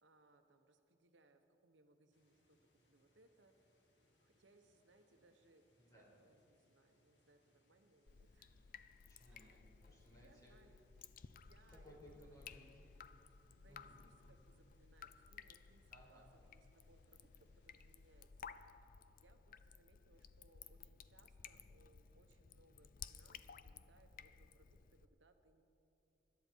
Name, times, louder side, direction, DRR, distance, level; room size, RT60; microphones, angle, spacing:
voice 1, 0.0-2.6 2.9-3.5 4.2-5.6 5.9-8.6 9.2-9.6 10.1-10.8 11.4-12.5 13.5-18.3 18.6-18.9 19.2-25.6, right 2 dB, 85° right, 6 dB, 1.1 m, -71 dB
sound 1, 2.1-18.3, left 1 dB, 70° left, 2.6 m, -79 dB
voice 2, 5.8-6.1 9.1-10.5 11.8-12.9 13.7-14.0 15.9-16.3, equal, 20° left, -4 dB, 5.0 m, -62 dB
Drip, 8.1-25.1, left 7 dB, 50° left, 0.5 m, -58 dB
25.0 x 12.0 x 4.6 m, 2.9 s
head